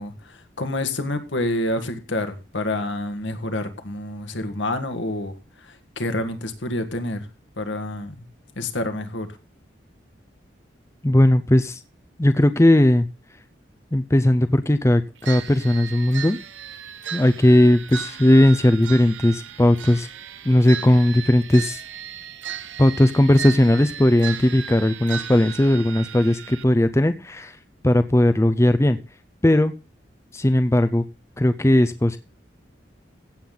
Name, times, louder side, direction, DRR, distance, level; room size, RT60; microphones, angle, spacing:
voice 1, 0.0-5.3 6.0-7.2 7.6-8.1 8.6-9.3, left 1 dB, 80° left, 7 dB, 1.7 m, -28 dB
voice 2, 11.0-11.8 12.2-13.1 13.9-16.4 17.1-20.1 20.5-21.8 22.8-27.6 27.8-29.0 29.4-29.7 30.3-31.0 31.4-32.2, left 1 dB, 15° left, 9 dB, 0.5 m, -17 dB
sound 1, 15.2-26.6, right 9 dB, 85° right, 0.9 m, -36 dB
15.5 x 7.5 x 3.9 m, 0.33 s
head